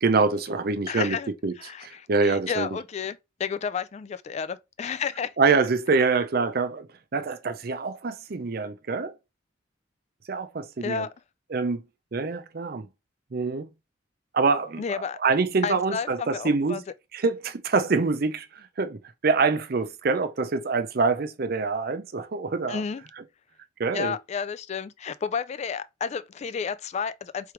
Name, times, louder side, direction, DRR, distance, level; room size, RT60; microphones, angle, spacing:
voice 1, 0.0-1.2 1.4-1.5 1.8-2.8 5.4-6.9 7.1-9.1 10.3-11.1 11.5-11.8 12.1-12.9 13.3-13.7 14.3-16.8 17.1-18.5 18.8-22.8 23.8-24.2, right 4 dB, 55° right, 0.5 m, -25 dB
voice 2, 0.9-1.3 1.6-5.3 10.8-11.1 14.8-15.2 15.6-16.8 22.7-23.0 23.9-27.5, left 6 dB, 35° left, 0.3 m, -31 dB
3.6 x 3.2 x 4.5 m
head